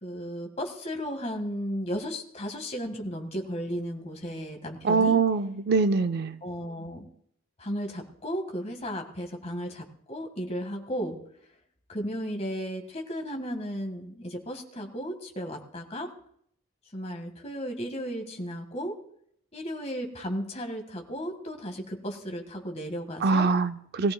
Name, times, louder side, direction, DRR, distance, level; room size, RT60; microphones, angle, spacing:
voice 1, 0.0-5.2 6.4-7.1 7.6-11.2 11.9-16.1 16.9-19.0 19.5-23.5, equal, 30° left, 1.6 m, -34 dB
voice 2, 4.8-6.4 23.2-24.1, right 4 dB, 50° right, 0.5 m, -23 dB
20.5 x 14.5 x 2.2 m
head